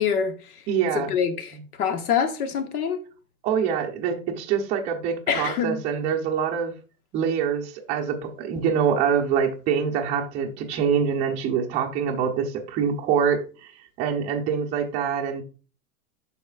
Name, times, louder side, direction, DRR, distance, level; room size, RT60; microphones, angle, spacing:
voice 1, 0.0-0.6 0.9-3.0 5.3-5.8, left 7 dB, 85° left, 1.3 m, -25 dB
voice 2, 0.7-1.1 3.4-6.7 7.1-13.7 14.0-15.4, right 7 dB, 15° right, 0.5 m, -25 dB
12.5 x 4.2 x 2.3 m
supercardioid pair, 155°, 44 cm